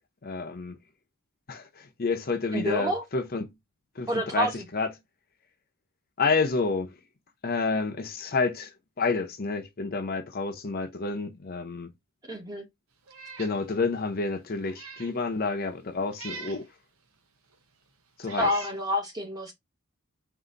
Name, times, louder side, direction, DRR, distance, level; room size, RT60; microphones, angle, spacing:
voice 1, 0.2-0.8 1.5-1.7 2.0-3.5 4.0-4.9 6.2-6.9 7.4-8.7 9.0-11.9 13.4-16.7 18.2-18.5, left 4 dB, 45° left, 0.7 m, -29 dB
voice 2, 2.5-3.0 4.1-4.6 12.3-12.7 18.4-19.5, equal, 15° right, 1.1 m, -28 dB
Meow, 13.1-13.6 14.0-14.1 14.6-15.2 16.1-16.7 17.5-17.6 18.2-18.8, right 5 dB, 75° right, 0.9 m, -42 dB
4.0 x 2.7 x 3.7 m
head